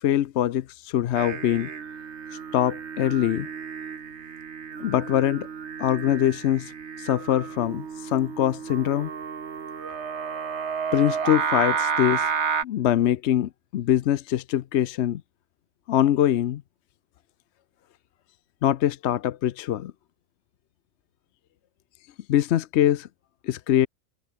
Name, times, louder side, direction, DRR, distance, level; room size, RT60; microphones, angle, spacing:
voice 1, 0.0-1.7 2.5-3.5 4.8-5.5 5.8-6.7 7.0-9.1 10.9-12.3 12.6-15.2 15.9-16.6 18.6-19.9 22.3-23.1 23.4-23.9, left 11 dB, 65° left, 0.9 m, -23 dB
Singing, 1.1-12.6, right 6 dB, 60° right, 1.6 m, -31 dB
omnidirectional pair, 1.4 m